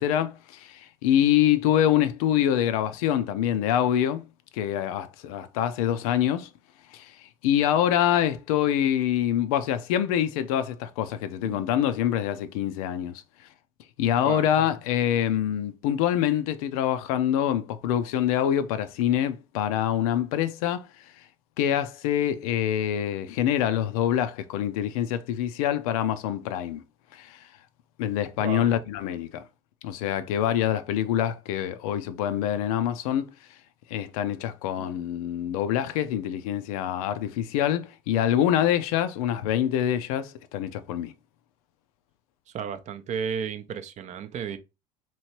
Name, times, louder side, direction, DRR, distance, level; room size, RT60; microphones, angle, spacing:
voice 1, 0.0-4.3 4.5-6.5 6.9-7.1 7.4-13.2 14.0-20.9 21.6-26.8 27.1-27.4 28.0-29.4 29.8-33.3 33.9-41.1, left 10 dB, 75° left, 0.4 m, -25 dB
voice 2, 28.4-28.7 34.8-34.9 42.5-44.6, right 7 dB, 40° right, 0.5 m, -33 dB
3.0 x 2.7 x 2.9 m
hypercardioid pair, 75°, 19 cm